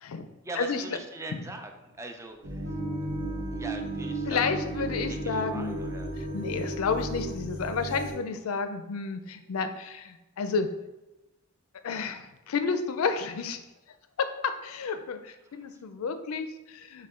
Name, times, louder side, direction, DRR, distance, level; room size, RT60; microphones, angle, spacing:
voice 1, 0.3-2.8 3.5-4.6 5.1-6.1 8.0-8.1 15.4-15.7, right 2 dB, 15° right, 5 dB, 0.3 m, -42 dB
sound 1, 2.4-8.1, right 1 dB, 40° right, 1.1 m, -35 dB
Wind instrument woodwind instrument, 2.6-7.5, right 1 dB, 55° right, 0.8 m, -40 dB
voice 2, 4.3-5.8 6.3-10.7 11.8-13.6 14.4-17.1, left 5 dB, 85° left, 9 dB, 0.4 m, -31 dB
5.4 x 2.2 x 3.6 m, 0.98 s
head